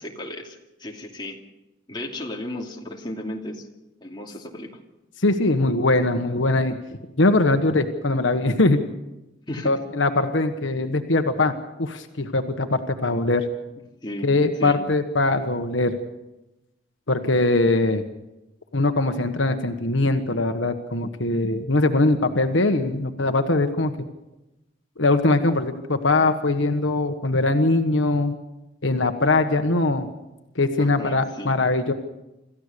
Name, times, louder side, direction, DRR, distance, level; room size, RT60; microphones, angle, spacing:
voice 1, 0.0-1.4 1.9-3.7 4.0-4.8 9.5-9.8 10.2-10.3 14.0-14.3 14.6-14.8 30.8-31.5, left 1 dB, 25° left, 0 dB, 2.6 m, -34 dB
voice 2, 5.2-6.8 7.2-8.8 9.6-11.5 11.8-13.4 14.2-16.0 17.1-18.0 18.7-23.9 25.0-28.3 28.8-30.1 30.5-31.9, left 2 dB, 75° left, 7 dB, 1.3 m, -21 dB
27.0 x 14.5 x 6.7 m, 0.96 s
head